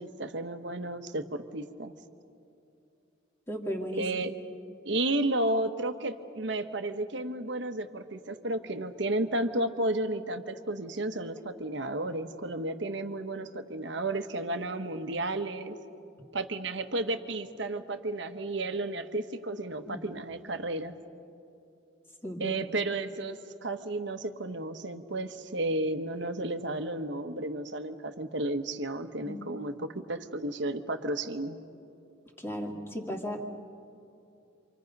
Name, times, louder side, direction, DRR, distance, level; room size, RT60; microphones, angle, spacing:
voice 1, 0.0-1.9 4.0-4.3 4.8-15.8 16.3-20.9 22.4-31.6, right 2 dB, 60° right, 7 dB, 1.2 m, -32 dB
voice 2, 3.5-4.1 19.9-20.0 22.2-22.6 29.2-29.5 32.4-33.4, equal, 10° left, 2 dB, 2.0 m, -35 dB
29.0 x 25.5 x 5.4 m, 2.6 s
head